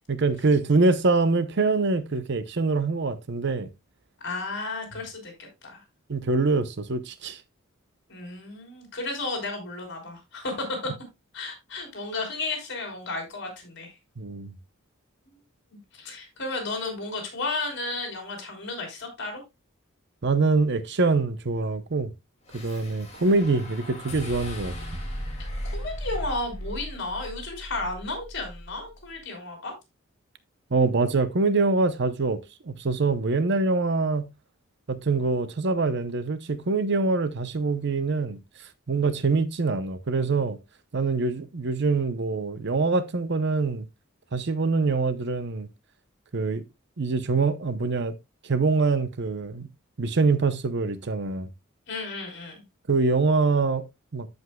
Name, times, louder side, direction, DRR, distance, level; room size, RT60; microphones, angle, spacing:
voice 1, 0.1-3.7 6.1-7.4 14.2-14.5 20.2-22.1 22.5-24.7 30.7-32.4 32.7-34.3 34.9-38.4 38.9-40.6 40.9-43.9 44.3-45.7 46.3-46.6 47.0-48.1 48.4-49.7 50.0-51.5 52.9-53.8 54.1-54.3, right 3 dB, 55° right, 0.7 m, -24 dB
voice 2, 4.2-5.8 8.1-10.5 11.3-13.9 15.7-19.4 25.7-29.7 51.9-52.6, left 3 dB, 60° left, 3.9 m, -33 dB
sound 1, 22.5-28.8, equal, 30° left, 2.3 m, -37 dB
14.0 x 5.3 x 2.2 m
head